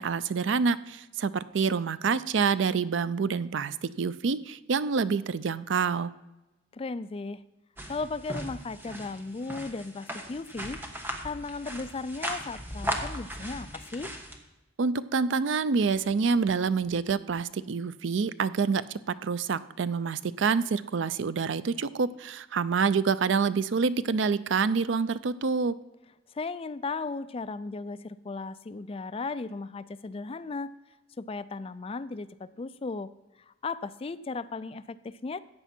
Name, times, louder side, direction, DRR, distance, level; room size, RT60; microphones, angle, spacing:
voice 1, 0.0-6.1 14.8-25.8, right 5 dB, 70° right, 16 dB, 0.5 m, -27 dB
voice 2, 6.7-7.4 7.9-14.1 26.3-30.7 31.2-33.1 33.5-35.4, left 3 dB, 30° left, 13 dB, 0.4 m, -36 dB
sound 1, 7.8-14.4, right 1 dB, 10° right, 1.2 m, -37 dB
14.0 x 9.1 x 4.4 m, 1.0 s
head